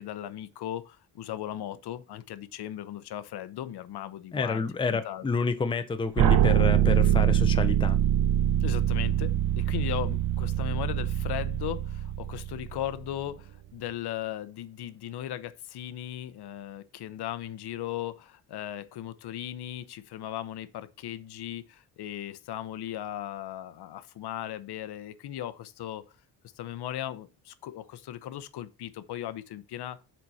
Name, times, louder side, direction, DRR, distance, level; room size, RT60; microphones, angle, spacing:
voice 1, 0.0-5.3 8.6-26.0 26.6-30.0, left 12 dB, 65° left, 0.9 m, -37 dB
voice 2, 4.3-8.0, left 4 dB, 10° left, 0.6 m, -29 dB
sound 1, 6.2-13.1, right 11 dB, 50° right, 0.6 m, -24 dB
7.5 x 5.6 x 4.2 m
cardioid pair, 135°, 42 cm